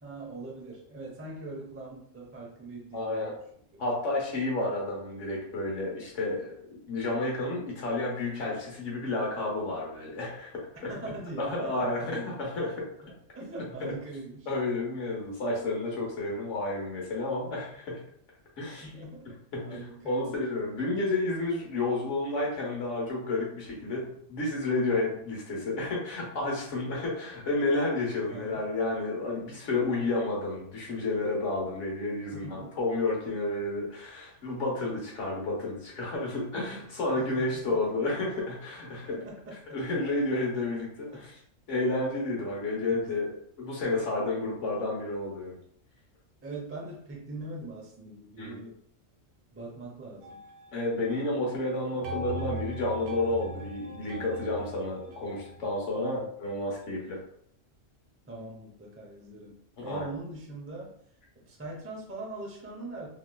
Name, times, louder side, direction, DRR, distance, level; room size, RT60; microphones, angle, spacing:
voice 1, 0.0-3.4 3.7-3.8 10.9-12.1 13.0-14.5 18.8-20.4 28.3-28.7 32.3-32.8 37.1-37.8 38.9-39.6 42.9-43.2 46.4-48.8 49.5-50.4 56.0-56.3 58.3-60.9 61.5-63.1, right 2 dB, 15° right, -2 dB, 0.5 m, -42 dB
voice 2, 2.9-3.3 3.8-10.5 11.4-12.9 13.8-13.9 14.5-18.0 18.6-18.9 19.5-39.2 39.7-41.3 41.7-45.6 48.4-48.6 50.7-57.2 59.8-60.1, left 2 dB, 70° left, -3 dB, 1.3 m, -31 dB
sound 1, 50.2-51.4 51.8-55.7, right 2 dB, 90° right, 1.0 m, -40 dB
3.0 x 3.0 x 2.2 m, 0.67 s
omnidirectional pair, 1.3 m